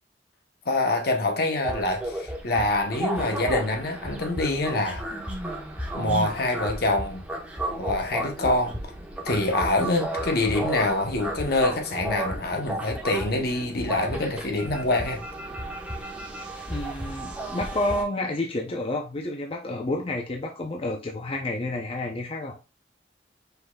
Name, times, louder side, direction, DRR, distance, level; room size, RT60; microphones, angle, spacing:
voice 1, 0.7-5.1 5.9-7.2 7.7-8.8 9.2-15.2, left 2 dB, 60° left, 0.9 m, -25 dB
sound 1, 1.6-18.0, right 1 dB, 10° right, 1.0 m, -33 dB
voice 2, 16.7-22.5, left 2 dB, 30° left, 0.6 m, -30 dB
5.4 x 4.0 x 2.3 m
head